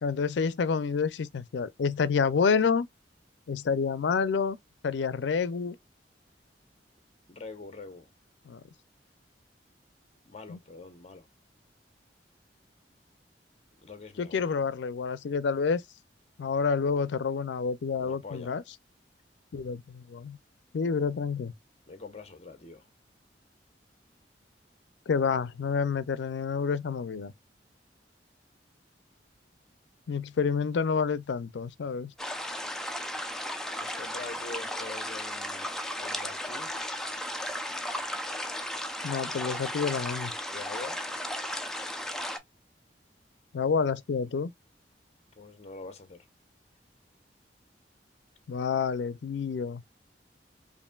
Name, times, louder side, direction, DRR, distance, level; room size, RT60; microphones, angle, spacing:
voice 1, 0.0-2.9 3.5-4.6 4.8-5.8 8.5-8.6 10.5-10.6 14.2-15.8 16.4-18.6 19.5-20.4 20.7-21.5 25.1-27.3 30.1-32.1 39.0-40.3 43.5-44.5 48.5-49.8, left 5 dB, 80° left, 0.4 m, -28 dB
voice 2, 7.3-8.1 10.2-11.3 13.8-14.5 18.0-18.6 21.9-22.9 33.8-36.7 37.4-37.6 40.5-41.0 45.4-46.2, left 3 dB, 40° left, 0.7 m, -44 dB
sound 1, 32.2-42.4, left 1 dB, 5° left, 0.4 m, -35 dB
5.3 x 2.6 x 2.2 m
head